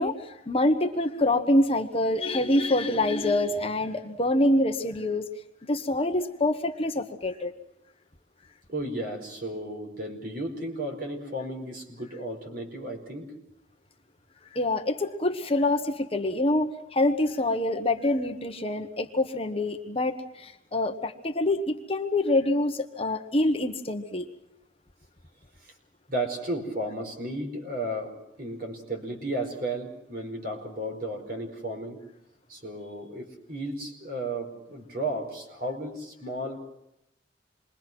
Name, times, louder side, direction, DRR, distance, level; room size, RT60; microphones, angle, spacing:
voice 1, 0.0-5.2 5.6-7.5 14.5-24.3, left 1 dB, 30° left, 5 dB, 1.3 m, -26 dB
voice 2, 8.7-13.3 25.6-25.7 26.1-32.0 32.5-36.6, right 1 dB, 50° right, 3 dB, 4.9 m, -34 dB
27.5 x 22.5 x 6.2 m, 0.84 s
head